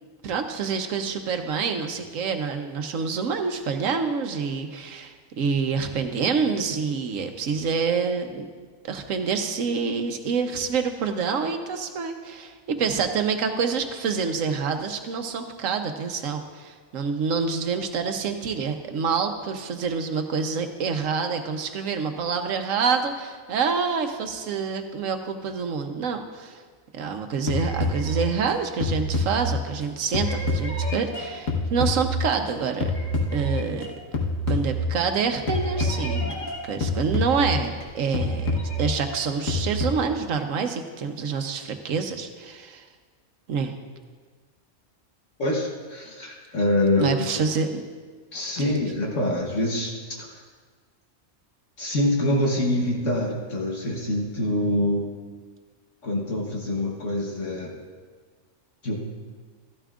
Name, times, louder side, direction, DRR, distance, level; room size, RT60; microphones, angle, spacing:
voice 1, 0.2-8.4 8.8-26.6 26.9-32.9 33.3-33.9 34.5-36.3 36.6-38.5 38.8-42.8 43.5-43.7 47.0-47.8 48.6-48.8, right 5 dB, 80° right, 6 dB, 1.2 m, -27 dB
sound 1, 27.5-29.8 30.1-32.5 32.8-33.9 34.1-35.2 35.5-37.8 38.1-39.8, left 1 dB, 85° left, 1.7 m, -27 dB
voice 2, 45.4-47.3 48.3-49.9 50.2-50.4 51.8-55.1 56.0-57.8 58.8-59.0, left 1 dB, 70° left, -2 dB, 1.6 m, -25 dB
14.0 x 12.5 x 2.5 m, 1.5 s
omnidirectional pair, 1.4 m